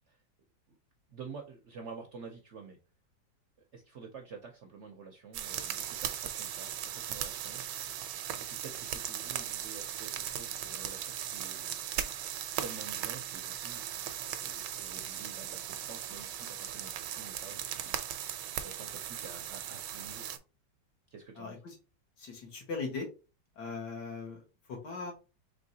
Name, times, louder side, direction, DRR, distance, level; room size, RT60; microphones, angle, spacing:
voice 1, 1.1-2.8 3.7-7.6 8.4-11.9 12.6-13.8 14.3-18.0 18.3-20.4 21.1-21.6, right 5 dB, 65° right, 3 dB, 0.7 m, -49 dB
sound 1, 5.3-20.4, right 10 dB, 85° right, 1.2 m, -38 dB
voice 2, 21.4-21.8 22.2-23.1 23.6-25.1, left 4 dB, 75° left, 0 dB, 2.0 m, -39 dB
4.4 x 3.3 x 2.7 m, 0.31 s
omnidirectional pair, 1.8 m